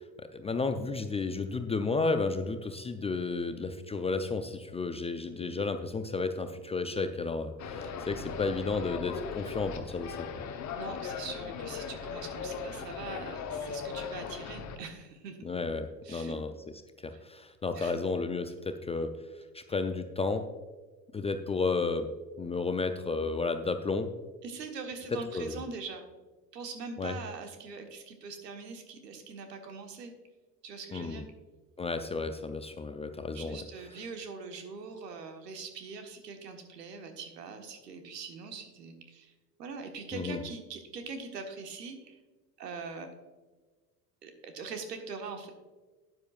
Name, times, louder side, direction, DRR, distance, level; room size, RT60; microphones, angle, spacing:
voice 1, 0.0-10.3 15.4-16.5 17.0-20.5 21.1-22.1 22.4-24.1 25.3-25.6 27.0-27.2 30.9-31.3 31.8-33.6 40.1-40.4, left 4 dB, 15° left, 8 dB, 0.5 m, -32 dB
sound 1, 7.6-14.8, left 6 dB, 35° left, 1.1 m, -38 dB
voice 2, 10.7-15.5 16.0-16.4 17.1-17.2 17.7-18.0 24.4-26.1 26.5-30.1 30.6-31.2 33.3-39.3 39.6-42.2 42.6-43.1 44.2-45.5, right 4 dB, 80° right, 5 dB, 1.5 m, -42 dB
12.5 x 9.5 x 2.4 m, 1.3 s
figure-of-eight pair, 70°, 49 cm